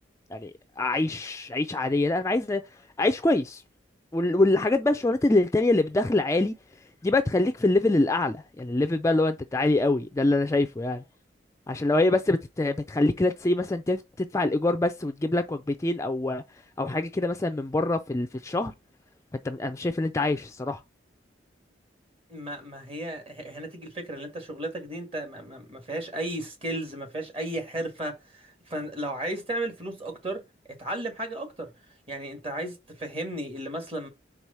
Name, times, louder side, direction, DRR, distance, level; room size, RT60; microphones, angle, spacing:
voice 1, 0.8-2.6 3.0-3.6 4.1-6.5 7.0-11.0 11.7-16.4 16.8-18.7 19.4-20.8, left 2 dB, 15° left, 0.4 m, -25 dB
voice 2, 22.3-30.4 30.8-31.7 32.1-34.1, right 1 dB, 30° right, 1.6 m, -34 dB
4.7 x 3.6 x 5.4 m
head